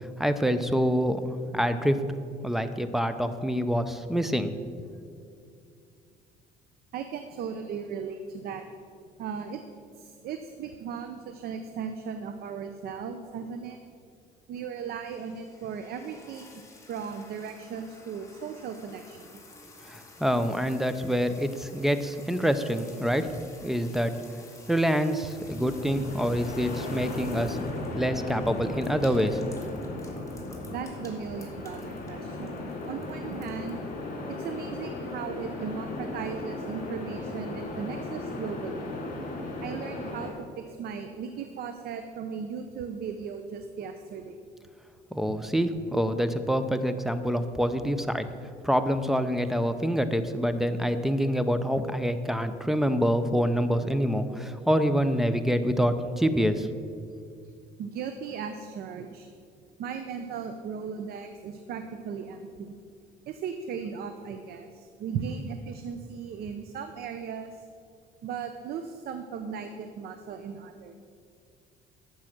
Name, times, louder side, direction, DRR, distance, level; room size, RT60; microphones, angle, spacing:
voice 1, 0.2-2.0 2.4-4.5 19.9-23.3 23.6-24.1 24.7-27.6 27.9-29.4 45.1-48.3 48.6-56.7, equal, ahead, 10 dB, 0.7 m, -26 dB
voice 2, 6.9-8.6 9.2-9.6 10.0-13.8 14.5-16.5 16.9-19.3 30.7-33.8 34.3-38.9 39.6-44.4 45.3-45.4 57.8-59.3 59.8-62.7 63.3-67.5 68.2-71.0, right 6 dB, 65° right, 8 dB, 0.7 m, -37 dB
sound 1, 15.1-33.9, left 3 dB, 20° left, 1.9 m, -52 dB
sound 2, 25.4-40.3, left 2 dB, 55° left, 3.2 m, -36 dB
11.0 x 7.6 x 6.0 m, 2.3 s
cardioid pair, 110°, 17 cm